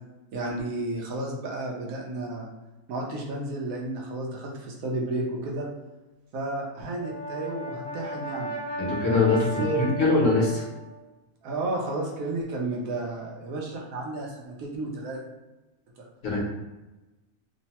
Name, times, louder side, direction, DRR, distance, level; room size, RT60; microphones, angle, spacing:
voice 1, 0.3-2.5 2.9-5.7 6.3-8.5 9.6-9.9 11.4-15.2, right 2 dB, 80° right, -1 dB, 1.1 m, -32 dB
Brass instrument, 6.8-11.0, right 2 dB, 55° right, 0.9 m, -35 dB
voice 2, 8.8-10.6 16.2-16.4, left 3 dB, 65° left, -2 dB, 1.1 m, -23 dB
3.0 x 2.1 x 2.8 m, 1.1 s
omnidirectional pair, 1.5 m